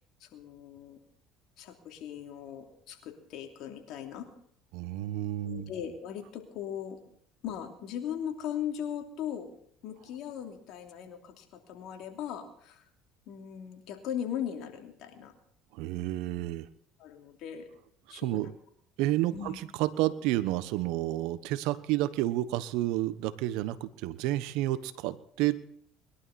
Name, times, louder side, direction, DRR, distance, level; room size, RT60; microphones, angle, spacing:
voice 1, 0.2-1.0 1.6-4.3 5.4-7.0 7.4-9.5 9.8-12.9 13.3-15.3 17.0-17.7 18.1-18.4 19.3-19.6, left 9 dB, 65° left, 4 dB, 2.9 m, -38 dB
voice 2, 4.7-5.7 15.7-16.7 18.1-18.5 19.0-25.6, right 15 dB, 75° right, 14 dB, 1.1 m, -30 dB
21.5 x 11.5 x 4.3 m, 0.64 s
supercardioid pair, 85°, 0 cm